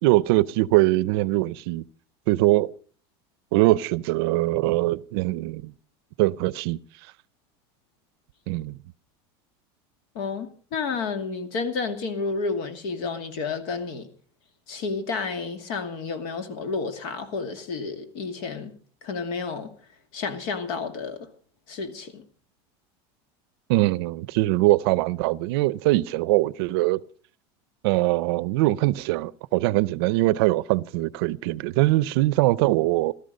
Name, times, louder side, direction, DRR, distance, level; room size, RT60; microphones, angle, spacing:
voice 1, 0.0-1.8 2.3-2.7 3.5-5.7 6.2-6.8 8.5-8.8 23.7-27.0 27.8-33.1, right 19 dB, 65° right, 0.6 m, -22 dB
voice 2, 10.1-14.1 14.7-18.7 19.0-19.8 20.1-21.3 21.7-22.2, left 4 dB, 60° left, 2.4 m, -31 dB
16.5 x 13.5 x 5.3 m
supercardioid pair, 155°, 14 cm